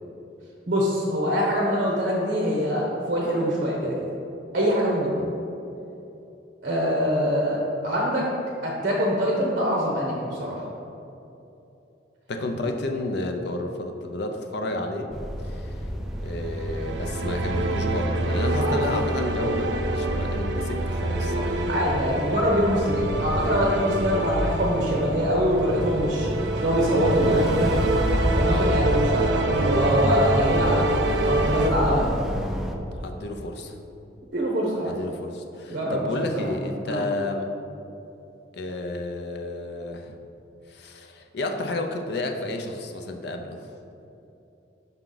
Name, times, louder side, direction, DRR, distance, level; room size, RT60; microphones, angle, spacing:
voice 1, 0.7-4.0 4.5-5.1 6.6-8.3 8.6-10.6 18.5-18.8 21.7-26.3 26.6-27.8 28.4-30.8 31.2-32.1 34.3-34.9 35.7-36.1 36.3-36.5 36.9-37.1, equal, 50° right, -2 dB, 0.9 m, -24 dB
voice 2, 12.3-15.1 15.4-15.8 16.2-21.6 28.5-28.7 30.4-30.8 33.0-33.7 34.8-37.5 38.5-40.1 40.7-43.7, left 2 dB, 65° left, 4 dB, 0.5 m, -31 dB
sound 1, 15.1-32.8, equal, ahead, 0.4 m, -30 dB
sound 2, 16.3-31.7, right 2 dB, 70° right, 0.5 m, -26 dB
5.9 x 5.5 x 3.9 m, 2.9 s
head